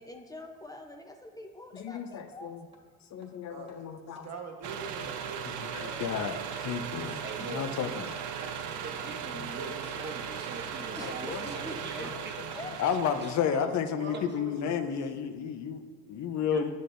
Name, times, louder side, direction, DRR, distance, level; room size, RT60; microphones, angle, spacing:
voice 1, 0.0-2.5 10.9-12.1 12.6-12.7, left 1 dB, 10° left, 3 dB, 0.7 m, -44 dB
voice 2, 1.7-2.7 3.1-4.3 5.4-8.2 9.3-9.5 10.9-11.4 11.8-16.7, left 7 dB, 65° left, 7 dB, 0.6 m, -33 dB
Hammer, 1.8-1.9 2.3-2.4 2.7-2.8 3.2-3.3 3.7-3.8 4.2-4.3 4.6-4.7 5.1-5.2 5.6-5.7 6.0-6.2 6.5-6.6 7.0-7.2 7.5-7.6 8.0-8.1 8.5-8.6 9.0-9.1 9.5-9.6 10.0-10.1 10.5-10.6 11.0-11.1 11.5-11.6 12.0-12.2 12.5-12.6 13.1-13.2 13.6-13.7 14.6-15.0 15.2-15.3, right 1 dB, 20° right, 1.4 m, -51 dB
voice 3, 3.5-6.2 9.6-9.7 13.5-13.7 14.0-14.8, right 4 dB, 60° right, 3 dB, 1.2 m, -43 dB
sound 1, 4.6-13.4, right 7 dB, 75° right, 0.6 m, -37 dB
voice 4, 7.2-7.7 8.2-12.3 13.2-13.3 14.1-14.2 16.5-16.7, right 3 dB, 35° right, 4 dB, 0.9 m, -43 dB
9.4 x 6.5 x 2.6 m, 1.5 s
cardioid pair, 90°, 30 cm